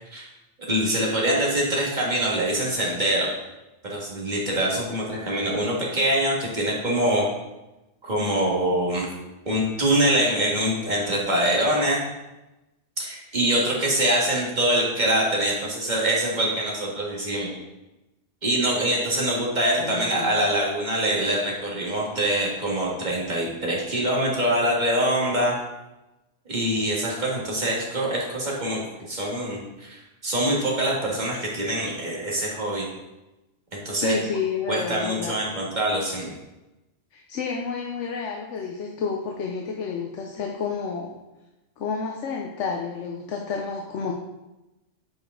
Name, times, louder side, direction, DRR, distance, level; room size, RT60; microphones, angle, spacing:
voice 1, 0.7-3.3 3.8-7.3 8.0-9.1 9.5-12.0 13.0-17.5 18.4-25.5 26.5-28.8 29.1-32.9 33.7-34.1 34.7-36.3, right 1 dB, 35° right, -4 dB, 1.8 m, -24 dB
voice 2, 19.8-20.3 34.0-35.4 37.1-41.1 41.8-44.1, left 5 dB, 70° left, 1 dB, 1.0 m, -30 dB
8.5 x 4.9 x 3.8 m, 1.0 s
omnidirectional pair, 1.3 m